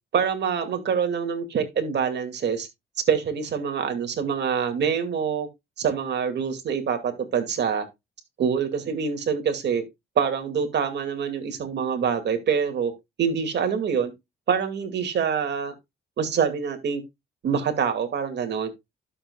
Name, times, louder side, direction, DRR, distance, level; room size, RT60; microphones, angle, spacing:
voice 1, 0.1-2.7 3.1-5.5 5.8-7.9 8.4-9.8 10.2-12.9 13.2-14.1 14.5-15.7 16.2-17.0 17.4-18.7, right 7 dB, 60° right, 2.3 m, -25 dB
12.5 x 7.1 x 2.3 m
cardioid pair, 90°, 20 cm